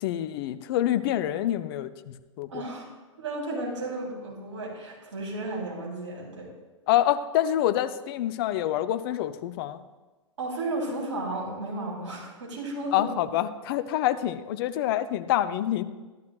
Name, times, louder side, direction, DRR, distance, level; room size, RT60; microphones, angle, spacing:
voice 1, 0.0-2.6 6.9-9.8 12.9-15.8, left 12 dB, 50° left, 12 dB, 0.5 m, -26 dB
voice 2, 2.5-2.8 3.2-6.5 10.4-13.1, right 2 dB, 70° right, -3 dB, 3.2 m, -33 dB
13.0 x 11.5 x 2.4 m, 1.2 s
figure-of-eight pair, 105°, 16 cm